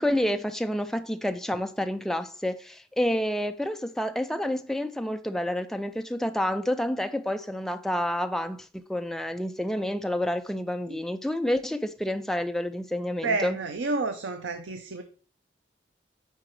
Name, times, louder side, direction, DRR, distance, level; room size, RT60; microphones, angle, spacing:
voice 1, 0.0-13.6, left 1 dB, ahead, 0.3 m, -29 dB
voice 2, 13.2-15.0, right 3 dB, 85° right, 0.6 m, -30 dB
8.8 x 4.7 x 3.1 m
head